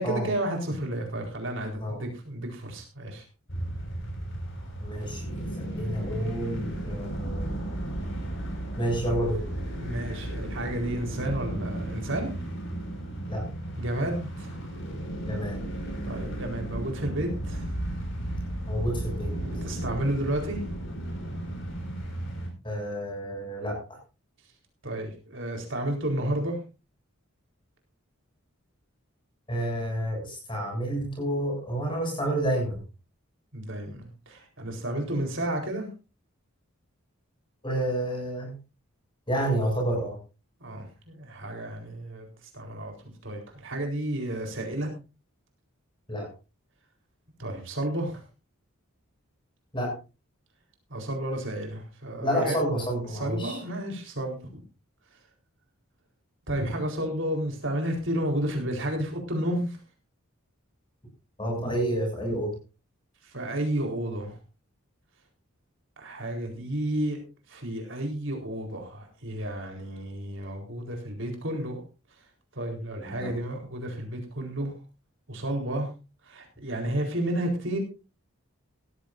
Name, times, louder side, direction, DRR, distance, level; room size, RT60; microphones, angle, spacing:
voice 1, 0.0-3.2 9.8-12.3 13.8-14.6 16.0-17.7 19.4-20.6 24.8-26.6 33.5-35.9 40.6-42.3 42.5-44.9 47.4-48.2 50.9-52.6 53.1-54.6 56.5-59.8 63.3-64.3 66.0-67.2 67.5-71.8 72.6-74.7 75.3-75.9 76.2-77.8, right 1 dB, 60° right, 2 dB, 4.3 m, -31 dB
sound 1, 3.5-22.5, right 1 dB, 55° left, 5.7 m, -34 dB
voice 2, 4.8-7.6 8.8-9.4 13.3-13.4 15.2-15.6 18.7-19.3 22.6-24.0 29.5-32.8 37.6-38.6 39.3-40.2 46.1-46.3 49.7-50.0 52.2-53.6 61.4-62.5 73.0-73.3, right 1 dB, 20° left, 1 dB, 7.3 m, -29 dB
17.5 x 14.5 x 2.7 m, 0.30 s
head